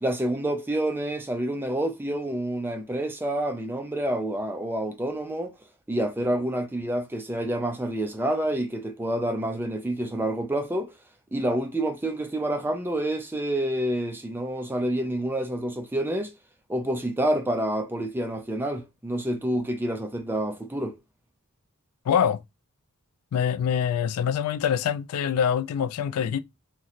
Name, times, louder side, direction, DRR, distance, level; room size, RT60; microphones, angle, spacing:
voice 1, 0.0-5.5 5.9-10.9 11.3-16.3 16.7-21.0, right 1 dB, 10° right, 0.4 m, -28 dB
voice 2, 22.1-22.4 23.3-26.4, left 8 dB, 80° left, 0.3 m, -25 dB
3.0 x 2.0 x 4.0 m
head